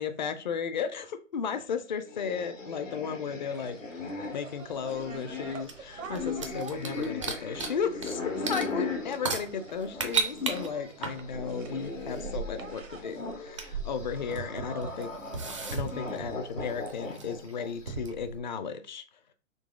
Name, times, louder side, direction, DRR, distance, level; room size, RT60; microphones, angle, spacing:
voice 1, 0.0-3.8 4.3-15.1 15.7-19.0, left 6 dB, 35° left, 0.5 m, -34 dB
sound 1, 2.0-10.8 11.1-17.9, left 4 dB, 80° left, 1.4 m, -39 dB
sound 2, 3.5-16.3, right 5 dB, 85° right, 0.8 m, -47 dB
sound 3, 5.1-8.2 8.4-18.4, right 5 dB, 25° right, 0.3 m, -36 dB
3.9 x 3.0 x 3.5 m
figure-of-eight pair, 130°, 38 cm